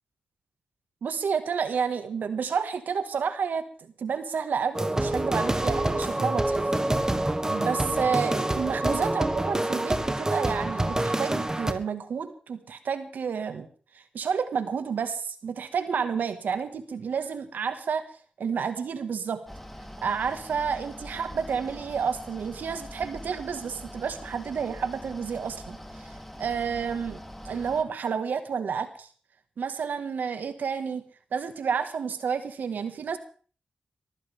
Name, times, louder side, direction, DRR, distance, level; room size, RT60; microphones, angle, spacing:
voice 1, 1.0-6.6 7.5-13.7 13.9-18.0 18.4-19.4 20.0-25.8 26.4-27.2 27.4-29.1 29.6-31.0 31.3-33.2, right 6 dB, 75° right, 9 dB, 1.7 m, -30 dB
sound 1, 4.7-11.7, right 1 dB, 20° right, 1.6 m, -27 dB
Mechanical fan, 19.5-27.8, equal, 5° left, 3.4 m, -43 dB
22.5 x 15.0 x 3.6 m, 0.42 s
supercardioid pair, 40°, 3 cm